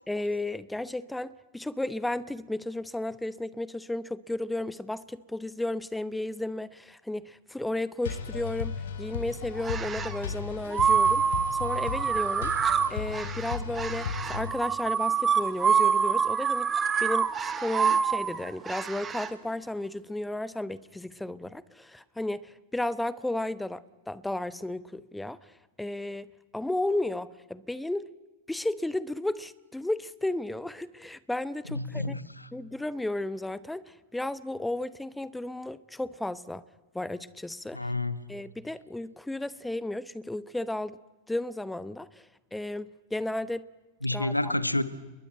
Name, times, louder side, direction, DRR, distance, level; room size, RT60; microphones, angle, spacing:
voice 1, 0.0-11.2 11.5-12.5 12.9-16.7 17.0-25.4 25.8-28.1 28.5-32.1 32.5-36.6 36.9-37.8 38.3-41.0 41.3-42.2 42.5-43.7 44.1-44.5, left 1 dB, 5° left, 0.9 m, -33 dB
sound 1, 8.0-14.5, left 6 dB, 60° left, 3.3 m, -35 dB
sound 2, 9.6-10.2 10.7-19.3, right 6 dB, 20° right, 1.8 m, -26 dB
voice 2, 31.7-32.5 37.7-38.2 44.0-44.8, left 2 dB, 85° left, 1.3 m, -29 dB
30.0 x 21.5 x 9.0 m
figure-of-eight pair, 90°, 0 cm